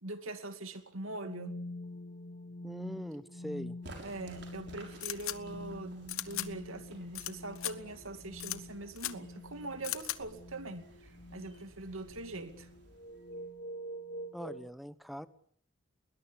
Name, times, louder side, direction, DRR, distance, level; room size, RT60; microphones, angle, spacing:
voice 1, 0.0-1.5 4.0-12.7, right 2 dB, 85° right, 8 dB, 2.5 m, -42 dB
sound 1, 1.1-14.7, left 1 dB, 35° left, 1.0 m, -46 dB
voice 2, 2.6-3.8 14.3-15.3, equal, ahead, 13 dB, 1.0 m, -42 dB
sound 2, 3.8-13.6, right 1 dB, 55° right, 6.3 m, -55 dB
sound 3, 5.0-5.4 6.1-6.5 7.1-7.3 7.6-7.7 8.4-8.6 9.0-9.1 9.8-10.2, left 14 dB, 90° left, 1.2 m, -36 dB
21.5 x 20.0 x 8.5 m, 0.62 s
head